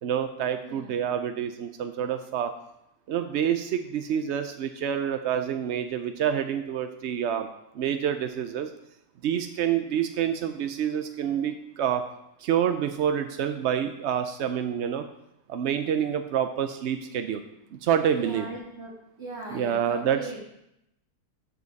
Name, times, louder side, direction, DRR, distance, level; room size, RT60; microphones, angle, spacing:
voice 1, 0.0-2.5 3.1-7.5 7.7-8.7 9.2-12.0 12.4-15.0 15.5-17.4 17.7-18.5 19.5-20.2, right 9 dB, 80° right, 8 dB, 0.6 m, -27 dB
voice 2, 0.6-0.9 18.1-18.9 19.2-20.4, right 2 dB, 40° right, -6 dB, 1.9 m, -39 dB
13.5 x 5.3 x 4.0 m, 0.83 s
omnidirectional pair, 1.8 m